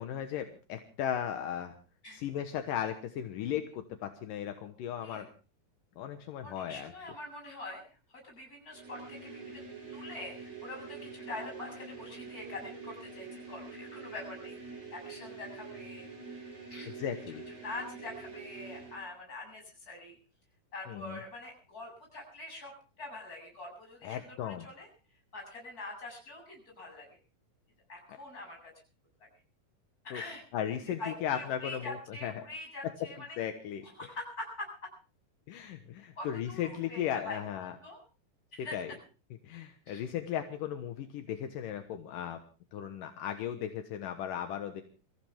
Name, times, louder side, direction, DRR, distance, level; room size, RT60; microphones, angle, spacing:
voice 1, 0.0-1.8 2.1-5.3 6.0-6.9 16.9-17.4 20.9-21.2 24.0-24.7 30.1-30.2 30.5-32.4 33.4-33.8 35.5-37.7 38.7-38.9 39.4-42.4 42.7-44.8, left 10 dB, 75° left, 7 dB, 2.8 m, -36 dB
voice 2, 6.4-7.8 8.1-9.6 9.9-14.6 14.9-16.1 16.7-16.9 17.6-20.2 20.7-22.7 23.0-24.9 25.3-27.2 27.9-28.7 30.0-30.4 31.0-33.4 33.8-34.7 36.2-37.4 37.8-38.0 38.5-39.0 39.9-40.0, left 2 dB, 25° left, 1 dB, 8.0 m, -44 dB
sound 1, 8.7-19.1, right 4 dB, 80° right, 8.4 m, -46 dB
26.0 x 15.0 x 3.5 m, 0.35 s
omnidirectional pair, 4.0 m